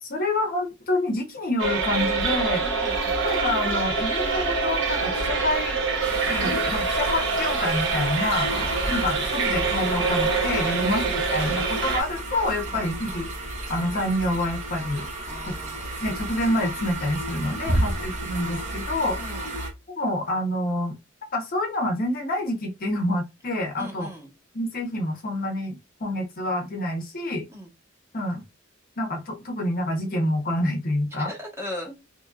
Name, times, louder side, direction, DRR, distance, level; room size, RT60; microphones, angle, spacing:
voice 1, 0.0-2.6 3.2-5.8 6.3-8.5 8.9-11.0 11.3-13.3 13.7-15.1 15.5-15.6 16.0-19.3 19.9-21.0 21.3-24.1 24.5-27.5 28.1-28.4 29.0-31.3, left 1 dB, 45° left, 0.7 m, -27 dB
sound 1, 1.6-12.0, right 4 dB, 70° right, 0.8 m, -25 dB
voice 2, 2.5-3.3 8.5-8.7 10.8-11.0 12.7-12.9 15.3-15.8 17.6-18.1 19.2-19.5 23.8-24.3 27.5-27.7 31.1-31.9, left 1 dB, 15° right, 1.0 m, -39 dB
sound 2, 6.0-19.7, right 1 dB, 40° right, 0.8 m, -32 dB
3.0 x 2.5 x 2.2 m
head